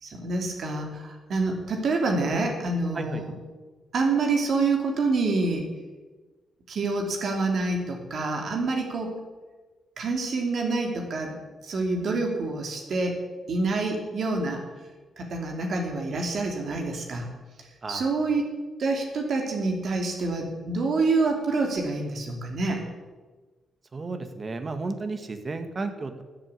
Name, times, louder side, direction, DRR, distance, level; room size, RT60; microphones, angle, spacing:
voice 1, 0.0-3.3 3.9-5.7 6.7-9.1 10.0-11.4 11.6-13.2 13.5-14.6 15.2-17.2 17.9-18.5 18.8-22.8, right 3 dB, 65° right, 2 dB, 2.9 m, -27 dB
voice 2, 17.8-18.1 23.9-26.2, right 3 dB, 35° right, 8 dB, 1.8 m, -33 dB
13.5 x 7.8 x 8.5 m, 1.3 s
cardioid pair, 85°, 0 cm